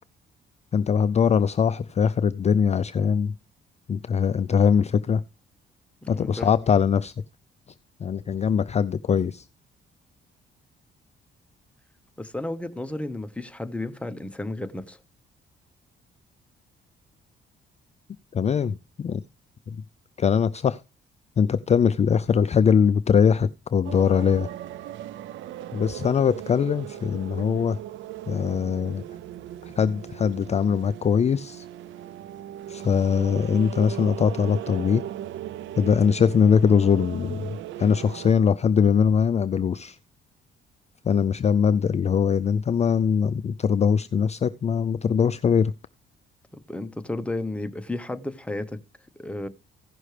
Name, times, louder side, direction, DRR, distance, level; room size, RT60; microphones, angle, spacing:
voice 1, 0.7-3.3 3.9-5.2 6.1-7.1 8.0-9.5 18.3-19.2 19.7-19.8 20.2-20.8 21.4-24.5 25.7-27.8 28.3-29.0 29.6-31.7 32.7-35.0 35.8-40.0 41.0-45.7, left 7 dB, 35° left, 0.4 m, -22 dB
voice 2, 6.0-6.5 12.2-15.0 46.5-48.8 49.2-49.5, left 2 dB, 5° left, 0.9 m, -33 dB
sound 1, 23.8-38.3, right 12 dB, 75° right, 0.4 m, -38 dB
16.0 x 6.2 x 3.3 m
cardioid pair, 90°, 20 cm